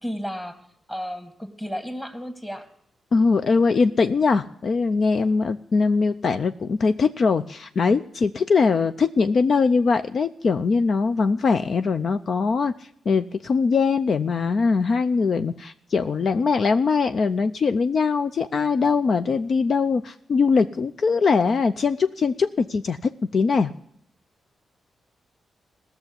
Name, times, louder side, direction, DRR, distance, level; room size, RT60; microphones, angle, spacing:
voice 1, 0.0-2.7, equal, 10° left, 7 dB, 1.9 m, -33 dB
voice 2, 3.1-12.7 13.1-23.7, left 4 dB, 55° left, 10 dB, 0.5 m, -21 dB
17.0 x 6.9 x 9.7 m, 0.67 s
cardioid pair, 100°, 0 cm